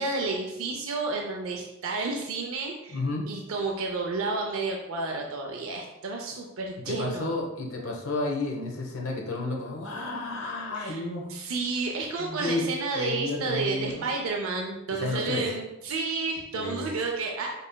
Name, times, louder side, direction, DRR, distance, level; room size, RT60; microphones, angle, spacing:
voice 1, 0.0-3.0 3.3-7.3 10.8-11.0 11.3-17.5, right 3 dB, 80° right, 1 dB, 0.5 m, -31 dB
voice 2, 2.9-3.3 6.8-11.3 12.2-12.7 12.9-14.1 14.9-15.5 16.5-16.9, left 2 dB, 90° left, 0 dB, 0.9 m, -32 dB
5.3 x 4.0 x 2.2 m, 0.97 s
head